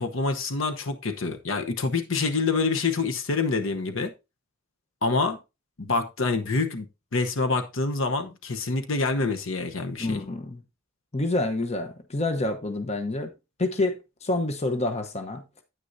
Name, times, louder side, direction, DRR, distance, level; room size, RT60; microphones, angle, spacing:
voice 1, 0.0-4.1 5.0-5.4 5.8-6.9 7.1-10.2, left 3 dB, 65° left, 1.0 m, -26 dB
voice 2, 10.0-10.6 11.1-13.3 13.6-15.4, left 2 dB, 30° left, 1.0 m, -28 dB
9.6 x 9.1 x 2.7 m
head